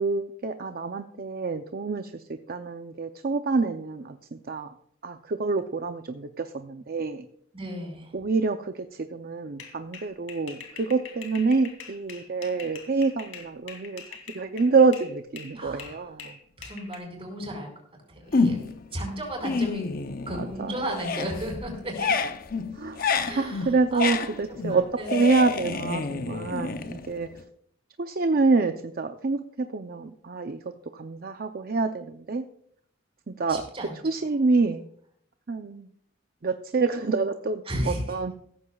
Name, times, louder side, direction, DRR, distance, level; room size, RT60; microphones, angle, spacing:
voice 1, 0.0-4.7 5.0-7.3 8.1-14.0 14.3-16.4 20.4-20.7 22.8-23.0 23.4-24.8 25.1-27.3 28.0-32.4 33.3-33.6 34.0-34.9 35.5-35.9 36.4-38.3, right 4 dB, 50° right, 7 dB, 0.6 m, -27 dB
voice 2, 7.5-8.1 15.5-16.1 16.6-17.7 18.1-18.6 18.9-19.9 20.3-22.3 23.2-25.2 33.5-33.9 37.7-38.2, equal, 30° right, 0 dB, 4.9 m, -34 dB
sound 1, 9.6-15.1 15.4-17.0, left 6 dB, 80° left, 2.7 m, -44 dB
sound 2, 18.3-18.9 19.3-20.6 20.9-27.4, left 4 dB, 50° left, 0.7 m, -29 dB
16.0 x 14.0 x 2.4 m, 0.66 s
head